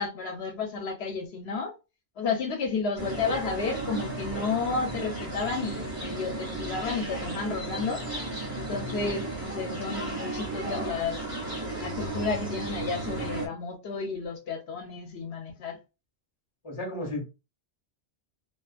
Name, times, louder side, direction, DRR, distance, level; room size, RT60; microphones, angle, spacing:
voice 1, 0.0-1.7 2.2-8.0 8.5-11.3 11.8-15.8, left 4 dB, 75° left, 0.8 m, -32 dB
sound 1, 3.0-13.5, right 2 dB, 30° right, 1.2 m, -34 dB
voice 2, 16.6-17.3, left 1 dB, 30° left, 1.1 m, -33 dB
2.5 x 2.4 x 2.4 m
omnidirectional pair, 1.1 m